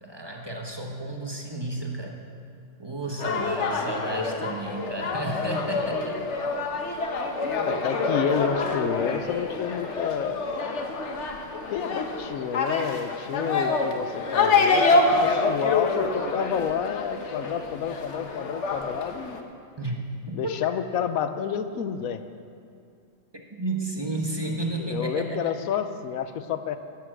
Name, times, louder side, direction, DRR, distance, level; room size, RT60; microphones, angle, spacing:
voice 1, 0.0-2.2 2.8-6.2 19.8-20.5 23.5-25.5, right 2 dB, 20° right, 0 dB, 1.1 m, -32 dB
sound 1, 3.2-19.4, left 3 dB, 60° left, 1.3 m, -27 dB
voice 2, 7.7-10.4 11.7-19.5 20.3-22.2 24.8-26.8, left 8 dB, 85° left, 10 dB, 1.1 m, -30 dB
11.0 x 8.8 x 7.6 m, 2.4 s
omnidirectional pair, 1.4 m